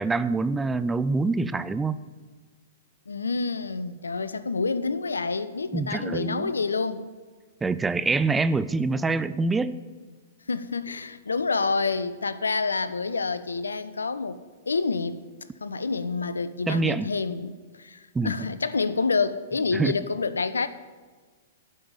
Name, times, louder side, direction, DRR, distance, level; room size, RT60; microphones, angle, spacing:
voice 1, 0.0-2.0 5.7-6.5 7.6-9.8 16.7-17.1 18.1-18.5 19.7-19.9, right 3 dB, 10° right, 14 dB, 0.5 m, -25 dB
voice 2, 3.1-7.0 10.5-15.2 15.6-20.7, left 4 dB, 85° left, 14 dB, 0.6 m, -28 dB
12.0 x 5.5 x 8.9 m, 1.5 s
hypercardioid pair, 115°, 0 cm